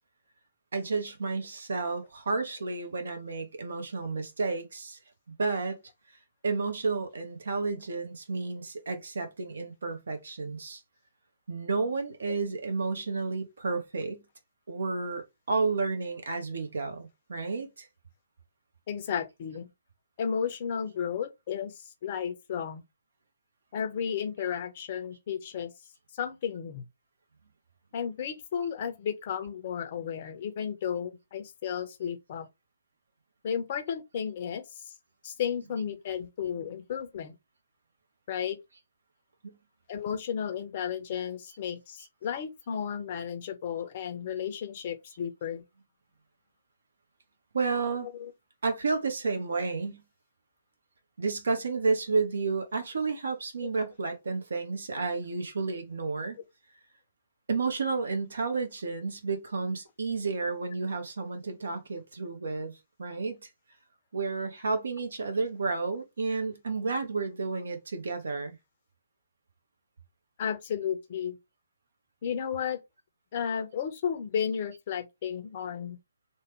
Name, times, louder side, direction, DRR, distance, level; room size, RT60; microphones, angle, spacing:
voice 1, 0.7-5.0 5.3-5.8 6.4-10.8 11.5-14.2 14.7-17.9 36.5-36.7 39.4-39.6 47.5-48.1 48.6-50.0 51.2-56.4 57.5-63.5 64.1-68.5, right 4 dB, 60° right, 0.8 m, -31 dB
voice 2, 18.9-19.6 20.2-22.8 23.7-25.7 26.1-26.8 27.9-32.5 33.4-34.9 35.2-37.4 38.3-38.6 39.9-45.6 48.0-48.3 70.4-71.4 72.2-72.8 73.3-76.0, left 8 dB, 40° left, 0.6 m, -33 dB
3.0 x 2.2 x 3.0 m
figure-of-eight pair, 130°, 0 cm